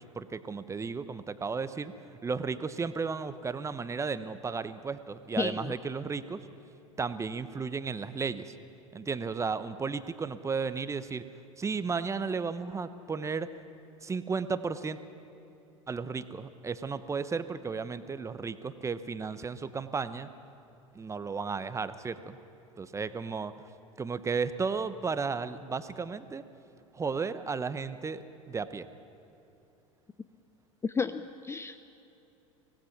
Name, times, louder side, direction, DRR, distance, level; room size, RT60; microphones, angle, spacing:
voice 1, 0.1-1.9 2.2-6.4 7.0-8.5 8.9-11.2 11.6-13.5 14.0-15.0 15.9-20.3 20.9-22.4 22.8-23.5 24.0-26.4 26.9-28.9, right 5 dB, 15° right, 13 dB, 0.9 m, -34 dB
voice 2, 5.4-5.7 30.8-31.9, left 5 dB, 15° left, 12 dB, 0.5 m, -32 dB
24.5 x 18.0 x 5.9 m, 2.9 s
hypercardioid pair, 85°, 18 cm